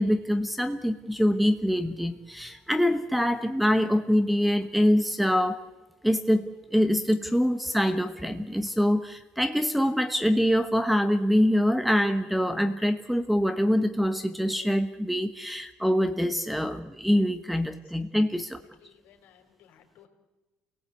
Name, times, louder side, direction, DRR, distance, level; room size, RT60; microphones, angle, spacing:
voice 1, 0.0-5.6 6.0-18.6, equal, ahead, 9 dB, 1.2 m, -24 dB
voice 2, 18.8-20.1, left 9 dB, 70° left, 4 dB, 4.4 m, -58 dB
29.0 x 18.0 x 8.3 m, 1.1 s
cardioid pair, 135°, 3 cm